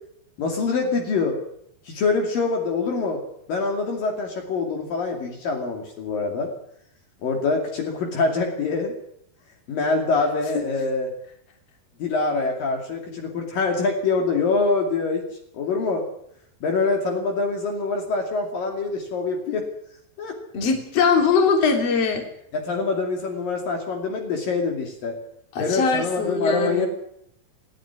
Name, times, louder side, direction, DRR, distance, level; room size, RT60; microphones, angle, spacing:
voice 1, 0.4-1.4 1.9-3.2 3.5-6.5 7.2-8.9 9.7-11.1 12.0-15.3 15.5-16.0 16.6-19.7 20.2-20.4 22.5-25.2 25.6-26.9, left 4 dB, 55° left, 2 dB, 4.1 m, -25 dB
voice 2, 20.5-22.2 25.6-26.9, left 5 dB, 40° left, 4 dB, 3.8 m, -21 dB
29.0 x 10.5 x 9.8 m, 0.72 s
omnidirectional pair, 4.9 m